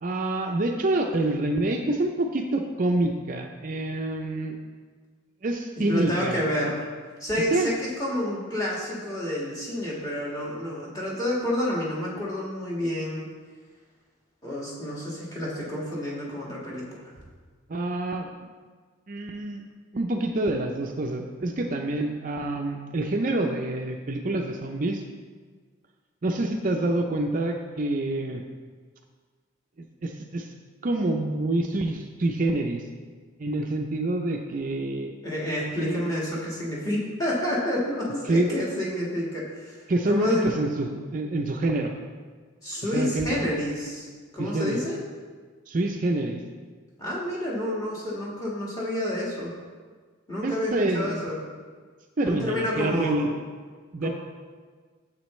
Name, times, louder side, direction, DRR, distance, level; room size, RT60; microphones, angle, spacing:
voice 1, 0.0-4.6 5.4-6.4 7.5-7.7 17.7-18.5 19.1-19.6 19.9-25.0 26.2-28.4 29.8-30.5 30.8-32.8 33.4-35.1 35.8-36.0 38.3-38.6 39.9-41.9 42.9-43.5 44.4-44.9 45.7-46.4 50.4-51.2 52.2-53.4 53.9-54.1, right 2 dB, 40° right, 3 dB, 0.4 m, -27 dB
voice 2, 5.8-6.9 7.2-13.2 14.4-17.1 35.2-40.4 42.6-44.1 44.3-45.0 47.0-49.5 50.3-51.4 52.2-53.1 54.0-54.1, left 1 dB, 15° left, -5 dB, 1.8 m, -29 dB
9.2 x 7.4 x 3.2 m, 1.5 s
head